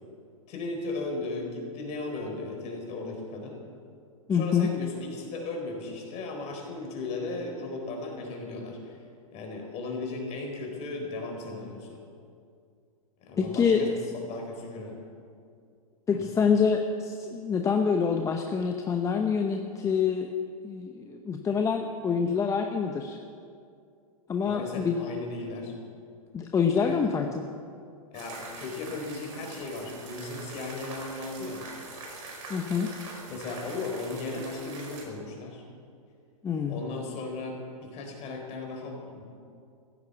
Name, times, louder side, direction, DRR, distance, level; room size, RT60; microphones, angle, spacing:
voice 1, 0.5-3.6 4.3-9.0 9.3-12.0 13.2-15.0 16.1-16.2 24.4-25.7 26.7-27.0 28.1-31.6 33.3-35.6 36.7-39.2, left 3 dB, 35° left, 2 dB, 4.3 m, -36 dB
voice 2, 4.3-4.7 13.4-14.0 16.1-20.3 20.6-23.2 24.3-25.0 26.3-27.5 32.5-32.9 36.4-36.8, left 6 dB, 15° left, 4 dB, 0.9 m, -26 dB
sound 1, 28.1-35.1, right 3 dB, 60° right, 4.8 m, -43 dB
15.5 x 10.5 x 8.4 m, 2.3 s
hypercardioid pair, 120°, 19 cm